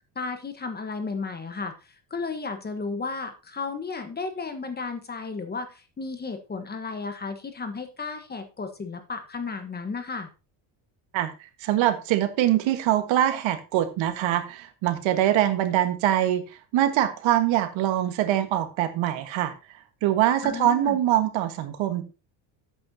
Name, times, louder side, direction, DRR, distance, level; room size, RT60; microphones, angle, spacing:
voice 1, 0.1-1.7 2.1-10.3 20.4-21.0, left 4 dB, 20° left, 1.2 m, -33 dB
voice 2, 11.1-16.4 16.7-19.5 20.0-22.0, right 12 dB, 65° right, 1.6 m, -23 dB
12.5 x 8.7 x 2.8 m
cardioid pair, 145°, 49 cm